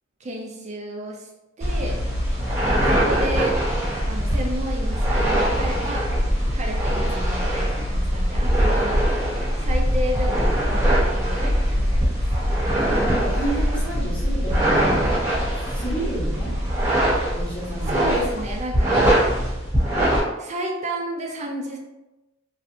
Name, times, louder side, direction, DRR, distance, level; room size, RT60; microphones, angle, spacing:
voice 1, 0.2-1.3 1.6-2.0 2.8-3.6 4.1-6.1 6.5-9.0 9.6-12.6 17.9-19.0 20.4-21.8, equal, 35° right, -1 dB, 0.4 m, -32 dB
sound 1, 1.6-20.2, equal, 15° right, 1.1 m, -22 dB
voice 2, 12.9-15.2 15.7-16.5 17.3-18.2, right 1 dB, 5° left, -10 dB, 1.2 m, -30 dB
3.0 x 2.5 x 2.7 m, 1.0 s
head